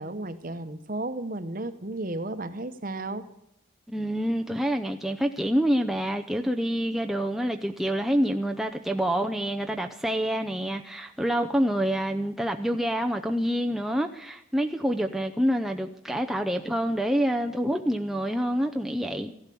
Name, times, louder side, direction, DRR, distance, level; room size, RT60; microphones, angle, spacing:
voice 1, 0.0-3.2, right 2 dB, 40° right, 1.0 m, -33 dB
voice 2, 3.9-19.3, equal, ahead, 0.6 m, -27 dB
15.0 x 12.0 x 6.9 m
head